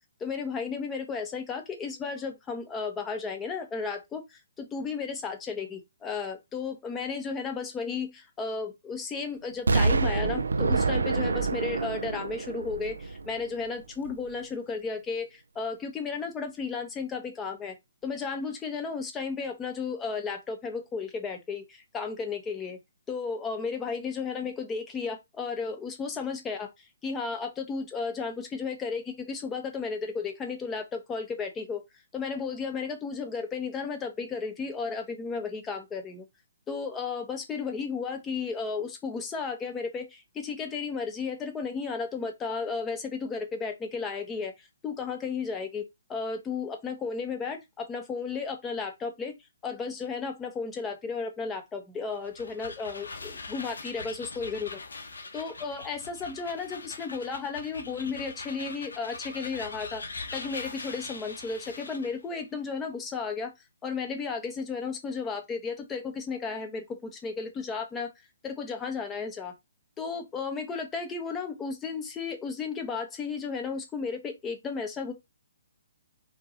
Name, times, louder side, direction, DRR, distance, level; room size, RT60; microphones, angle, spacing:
voice 1, 0.2-17.7 18.0-22.8 23.1-26.7 27.0-31.8 32.1-36.2 36.7-45.8 46.1-49.3 49.6-54.8 55.3-60.0 60.3-63.5 63.8-68.1 68.4-69.5 70.0-75.1, left 5 dB, 15° left, 1.2 m, -34 dB
Explosion, 9.7-13.6 14.0-14.1, right 3 dB, 85° right, 0.6 m, -27 dB
sound 1, 52.1-62.2, left 3 dB, 80° left, 1.1 m, -42 dB
4.5 x 3.0 x 3.9 m
hypercardioid pair, 140°, 0 cm